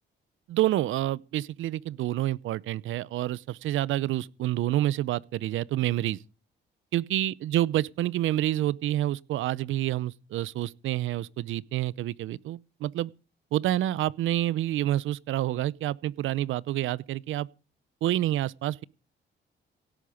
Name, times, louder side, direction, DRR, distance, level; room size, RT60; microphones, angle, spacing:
voice 1, 0.5-6.2 6.9-13.1 13.5-17.5 18.0-18.8, right 14 dB, 80° right, 0.7 m, -28 dB
17.5 x 8.7 x 6.5 m
cardioid pair, 90°, 20 cm